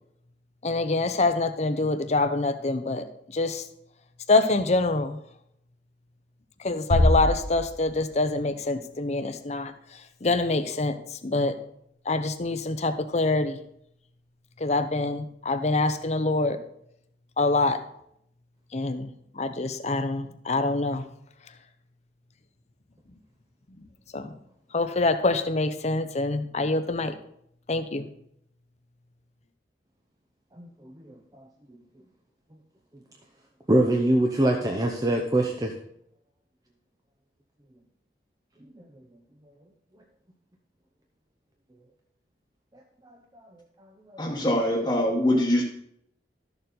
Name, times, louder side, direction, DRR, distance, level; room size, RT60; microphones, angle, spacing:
voice 1, 0.6-3.1 3.3-3.6 4.3-5.2 6.6-9.7 10.2-11.0 11.2-11.6 12.1-13.6 14.6-16.6 17.4-17.8 18.7-19.1 19.4-21.0 24.1-24.3 24.7-27.2 27.7-28.1, left 2 dB, 40° left, 9 dB, 0.7 m, -25 dB
Bass drum, 6.9-8.3, left 1 dB, 55° left, 1.2 m, -24 dB
voice 2, 30.6-30.9 33.7-35.7 44.1-44.2, right 1 dB, 20° right, 2 dB, 0.7 m, -23 dB
voice 3, 44.2-45.6, left 1 dB, 20° left, -5 dB, 1.2 m, -23 dB
12.5 x 6.8 x 4.0 m, 0.73 s
head